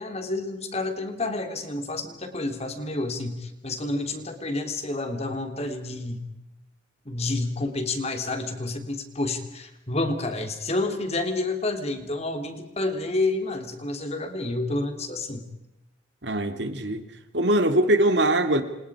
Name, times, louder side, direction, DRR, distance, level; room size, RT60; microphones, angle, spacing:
voice 1, 0.0-6.3 7.0-15.5, left 2 dB, 35° left, 6 dB, 3.2 m, -29 dB
voice 2, 16.2-17.0 17.3-18.6, right 1 dB, 65° right, 8 dB, 2.8 m, -22 dB
28.5 x 28.5 x 5.0 m, 0.95 s
head